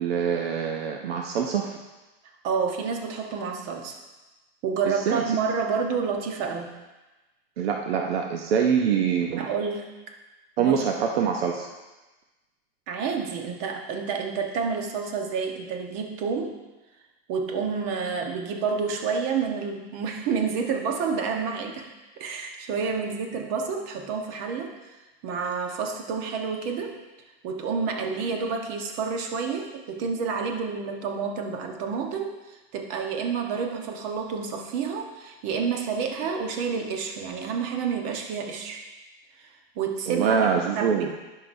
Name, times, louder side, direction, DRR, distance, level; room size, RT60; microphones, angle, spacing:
voice 1, 0.0-1.8 4.8-5.2 7.6-9.5 10.6-11.7 40.1-41.1, right 7 dB, 80° right, 2 dB, 0.8 m, -24 dB
voice 2, 2.4-4.0 4.6-6.7 9.4-10.1 10.6-10.8 12.9-16.6 17.3-21.9 22.2-24.7 25.2-27.0 27.4-38.8 39.8-41.1, right 5 dB, 50° right, 3 dB, 1.2 m, -29 dB
10.5 x 5.9 x 2.7 m, 1.1 s
supercardioid pair, 125°, 30 cm